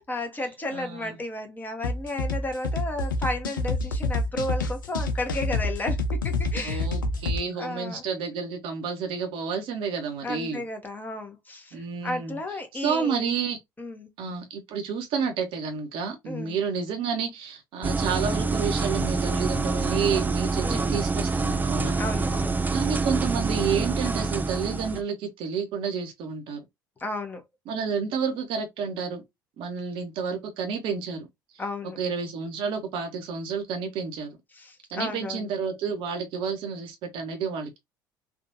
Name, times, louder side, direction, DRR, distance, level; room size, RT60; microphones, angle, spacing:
voice 1, 0.0-6.0 6.2-6.9 7.6-8.0 10.2-13.3 13.8-14.1 16.3-16.6 20.6-20.9 22.0-22.6 27.0-27.4 31.6-32.0 34.5-35.5, left 2 dB, 15° left, 1.1 m, -33 dB
voice 2, 0.7-1.1 6.6-10.6 11.7-12.4 12.8-13.6 14.2-22.0 22.7-26.6 27.7-29.2 29.6-31.3 32.0-34.3 34.9-37.8, right 6 dB, 55° right, 1.0 m, -30 dB
sound 1, 1.8-7.4, left 2 dB, 80° left, 0.5 m, -28 dB
sound 2, 17.8-25.0, right 4 dB, 15° right, 0.5 m, -26 dB
3.5 x 2.6 x 2.6 m
figure-of-eight pair, 60°, 10 cm